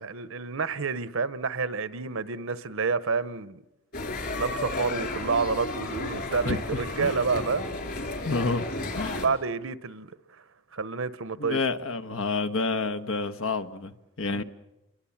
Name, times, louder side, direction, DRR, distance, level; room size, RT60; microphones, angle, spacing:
voice 1, 0.0-3.6 4.3-7.7 9.0-10.1 10.7-11.6 14.3-14.4, right 4 dB, 70° right, 0.9 m, -29 dB
sound 1, 3.9-9.3, left 2 dB, 50° left, 4.6 m, -33 dB
voice 2, 6.4-7.2 8.2-8.7 8.9-9.3 11.4-14.4, left 3 dB, 70° left, 1.3 m, -29 dB
29.0 x 23.0 x 7.3 m
head